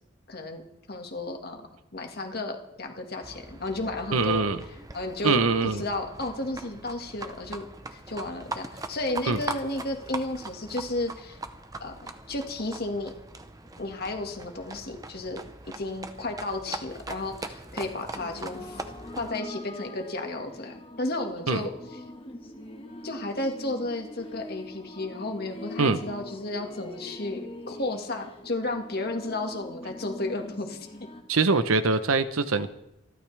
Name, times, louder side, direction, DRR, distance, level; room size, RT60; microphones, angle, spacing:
voice 1, 0.3-0.6 0.9-1.6 1.9-4.5 4.9-5.4 5.8-11.4 11.8-13.1 13.8-15.4 15.7-18.8 19.2-21.7 23.0-27.4 27.7-30.9, left 2 dB, 45° left, 3 dB, 1.8 m, -33 dB
Livestock farm animals working animals, 3.2-19.3, right 2 dB, 15° right, 0.8 m, -41 dB
voice 2, 4.1-4.6 5.2-5.8 9.3-9.4 21.5-21.6 25.8-26.0 31.3-32.7, right 4 dB, 85° right, 12 dB, 0.9 m, -23 dB
eerie reversed vocal, 18.1-31.2, left 1 dB, 25° left, 1.5 m, -43 dB
27.5 x 12.0 x 3.4 m, 0.85 s
head